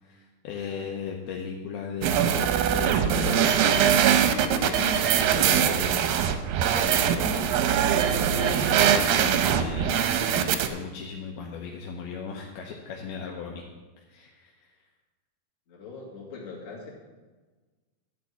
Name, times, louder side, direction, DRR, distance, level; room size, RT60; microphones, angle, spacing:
voice 1, 0.0-3.9 4.3-6.2 6.7-7.5 7.8-13.6 14.1-14.7, left 6 dB, 75° left, 0 dB, 2.7 m, -37 dB
sound 1, 2.0-10.7, right 9 dB, 80° right, 2.2 m, -22 dB
voice 2, 15.7-16.9, left 4 dB, 45° left, -5 dB, 3.4 m, -41 dB
12.0 x 4.4 x 8.3 m, 1.3 s
omnidirectional pair, 4.6 m